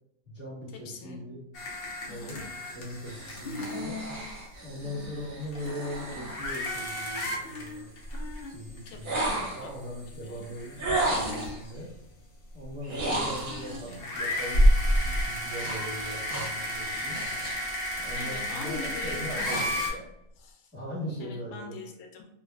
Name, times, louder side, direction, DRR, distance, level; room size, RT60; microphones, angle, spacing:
voice 1, 0.2-1.5 2.1-4.0 4.6-7.9 8.4-11.9 12.5-17.2 18.0-19.7 20.7-21.7, equal, 10° left, -10 dB, 1.3 m, -40 dB
voice 2, 0.8-1.2 2.1-2.4 4.8-5.1 8.9-9.1 9.6-9.7 10.2-10.5 13.8-14.0 18.2-20.0 20.4-20.7 21.2-22.3, left 5 dB, 85° left, 3 dB, 1.0 m, -43 dB
sound 1, 1.5-4.2 5.0-5.1 5.4-8.9 9.3-9.4 10.1-11.7 13.1-19.9, equal, 55° left, 0.7 m, -30 dB
sound 2, 3.1-7.3 9.0-9.8 10.8-11.6 12.8-13.9 15.6-17.7 18.0-18.4 18.9-20.0, right 1 dB, 45° right, 0.9 m, -34 dB
3.1 x 2.2 x 2.3 m, 0.81 s
omnidirectional pair, 1.5 m